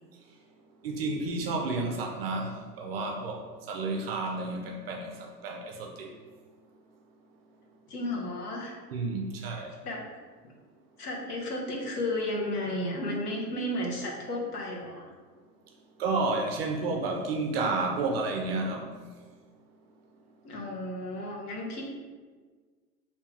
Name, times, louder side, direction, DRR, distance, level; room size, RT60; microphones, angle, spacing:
voice 1, 0.8-5.1 5.4-6.1 8.9-9.7 16.0-18.9, right 3 dB, 40° right, 2 dB, 0.5 m, -31 dB
voice 2, 7.9-8.8 9.5-10.1 11.0-15.0 20.4-21.8, left 1 dB, 70° left, -2 dB, 1.1 m, -33 dB
3.3 x 2.8 x 3.1 m, 1.5 s
hypercardioid pair, 120°, 48 cm